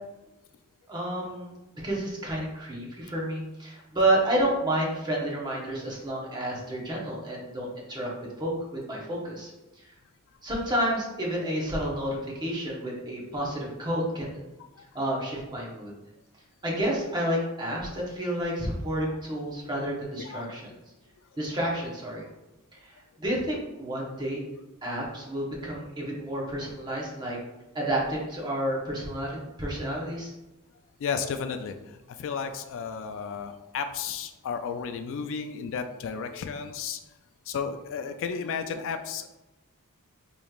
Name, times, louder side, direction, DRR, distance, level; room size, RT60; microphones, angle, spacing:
voice 1, 0.9-8.1 8.4-9.5 9.8-9.9 10.4-14.4 14.9-15.9 16.6-20.7 21.4-22.3 22.7-24.4 24.8-27.4 27.7-30.3, right 1 dB, 20° right, -3 dB, 0.9 m, -30 dB
voice 2, 20.2-20.6 31.0-37.0 37.5-39.4, left 6 dB, 60° left, 7 dB, 0.3 m, -33 dB
5.0 x 3.0 x 2.4 m, 1.0 s
head